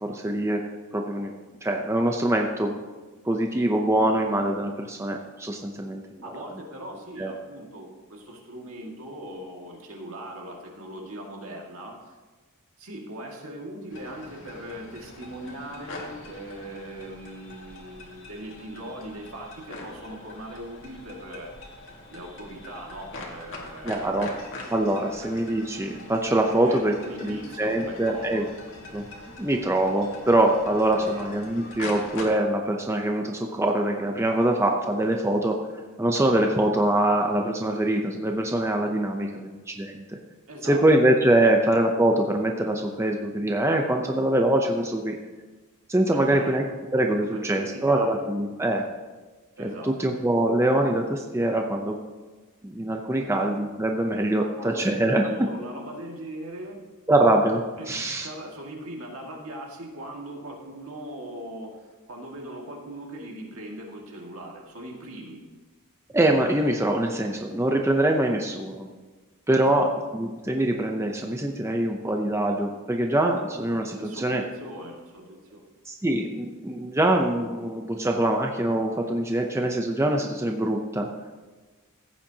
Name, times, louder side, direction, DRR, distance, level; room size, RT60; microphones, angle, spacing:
voice 1, 0.0-0.6 0.9-1.3 1.6-2.8 3.2-6.2 7.2-7.3 23.8-24.3 24.7-26.9 27.2-28.4 28.9-29.0 29.4-35.6 36.0-40.2 40.6-45.2 45.9-46.6 46.9-48.8 49.6-52.0 52.6-55.2 57.1-58.3 66.1-68.9 69.5-69.9 70.1-74.4 75.9-81.1, right 1 dB, 10° right, 2 dB, 0.6 m, -24 dB
voice 2, 6.2-12.2 12.8-21.5 22.1-24.3 25.2-25.3 26.5-28.5 31.0-31.3 40.5-40.9 46.1-46.5 47.3-48.2 49.6-49.9 53.1-53.4 54.4-56.8 57.8-61.8 62.1-65.4 69.5-69.9 73.9-75.6, right 1 dB, 65° right, 0 dB, 1.9 m, -40 dB
sound 1, 13.9-32.2, left 2 dB, 60° left, 1.9 m, -43 dB
15.0 x 8.8 x 2.8 m, 1.3 s
head